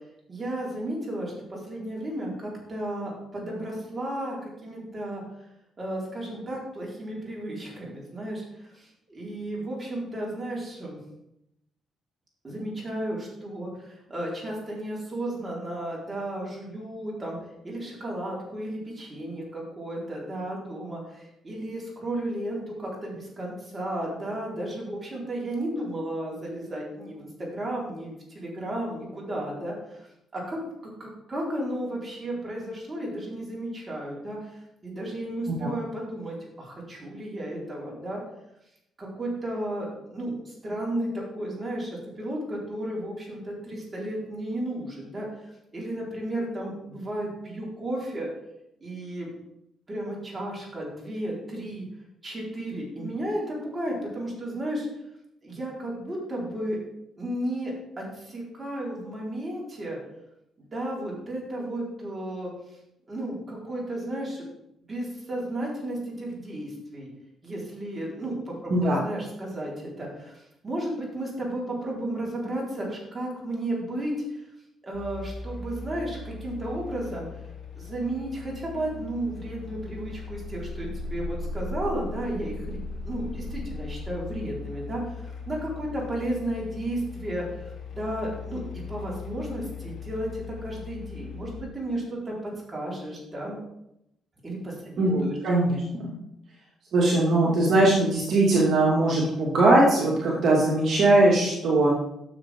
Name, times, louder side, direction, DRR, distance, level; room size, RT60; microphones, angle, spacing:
voice 1, 0.3-5.2 5.8-11.0 12.4-17.4 17.6-30.1 30.3-34.5 34.8-38.2 39.0-48.3 48.8-49.3 49.9-51.8 52.2-54.9 55.4-56.8 57.2-60.0 60.7-62.8 63.1-64.5 64.9-67.1 67.4-74.4 74.8-77.3 77.7-88.6 88.9-93.6 94.4-95.4, right 1 dB, 25° right, -4 dB, 4.6 m, -33 dB
voice 2, 68.7-69.0 95.0-96.1 96.9-101.9, right 2 dB, 60° right, -4 dB, 2.4 m, -21 dB
sound 1, 74.9-91.6, left 3 dB, 65° left, 2.8 m, -38 dB
12.5 x 7.2 x 3.8 m, 0.82 s
cardioid pair, 90°, 0 cm